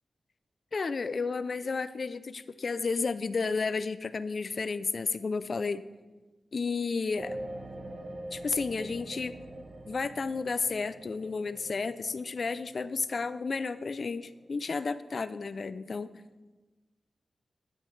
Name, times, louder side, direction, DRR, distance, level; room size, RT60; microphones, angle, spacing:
voice 1, 0.7-5.8 6.5-7.4 8.3-9.4 9.9-16.1, left 4 dB, 45° left, 13 dB, 0.4 m, -32 dB
sound 1, 7.2-14.6, right 1 dB, 45° right, 0.7 m, -45 dB
11.5 x 10.5 x 3.2 m, 1.2 s
wide cardioid pair, 180°, 0 cm